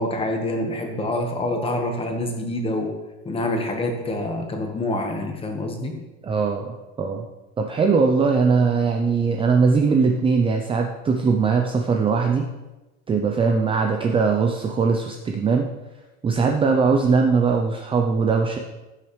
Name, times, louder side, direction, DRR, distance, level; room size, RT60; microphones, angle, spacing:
voice 1, 0.0-2.9 3.2-6.0, left 1 dB, 15° left, 3 dB, 1.3 m, -26 dB
voice 2, 6.2-7.2 7.6-12.5 13.1-15.7 16.2-18.6, right 5 dB, 15° right, 3 dB, 0.5 m, -20 dB
15.5 x 6.2 x 3.2 m, 1.1 s
cardioid pair, 145°, 34 cm